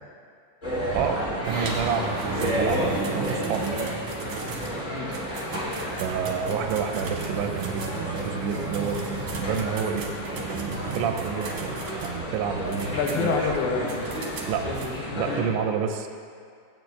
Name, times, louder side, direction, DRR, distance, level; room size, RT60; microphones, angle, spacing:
sound 1, 0.6-15.4, equal, 25° left, 1.8 m, -32 dB
voice 1, 0.9-3.7 6.0-9.0 9.4-10.1 10.7-11.8 12.0-13.5 14.5-14.6 15.1-16.1, right 7 dB, 90° right, 5 dB, 2.9 m, -29 dB
sound 2, 1.4-14.9, right 3 dB, 70° right, 1.9 m, -35 dB
voice 2, 12.9-14.2 14.6-15.5, left 5 dB, 85° left, 1 dB, 3.3 m, -28 dB
18.0 x 8.2 x 2.3 m, 2.3 s
omnidirectional pair, 5.2 m